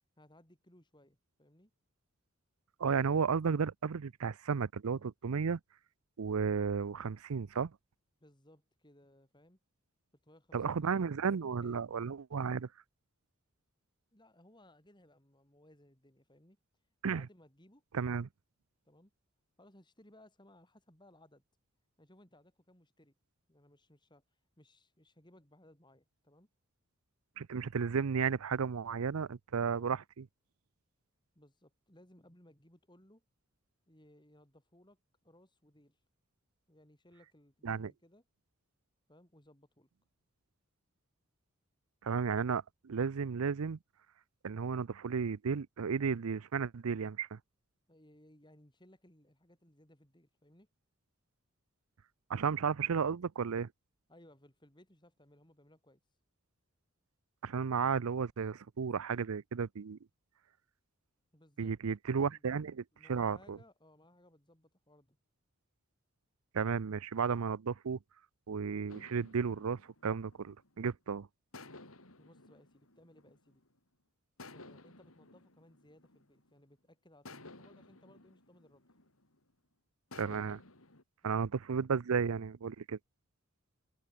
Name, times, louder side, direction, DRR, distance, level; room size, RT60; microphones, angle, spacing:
voice 1, 0.2-1.7 8.2-9.6 10.2-11.9 14.1-16.6 17.1-17.8 18.8-19.1 19.6-21.4 22.0-23.1 23.5-24.2 24.6-26.5 29.7-30.0 31.3-33.2 33.9-35.0 35.2-36.0 36.7-38.2 39.1-39.9 47.9-50.7 54.1-56.0 61.3-62.0 62.3-62.4 62.9-65.2 72.1-73.6 74.5-78.8 81.2-81.5, left 1 dB, 20° left, 5.0 m, -63 dB
voice 2, 2.8-5.6 6.2-7.7 10.5-12.7 17.0-17.3 17.9-18.3 27.4-30.0 37.6-37.9 42.0-43.8 44.4-47.4 52.3-53.7 57.4-60.0 61.6-62.8 63.1-63.6 66.5-68.0 68.5-71.3 80.2-80.6 81.2-83.0, right 6 dB, 85° right, 0.5 m, -33 dB
sound 1, 68.9-70.9 71.5-73.8 74.4-76.7 77.3-79.4 80.1-81.0, left 2 dB, 85° left, 5.9 m, -55 dB
open air
head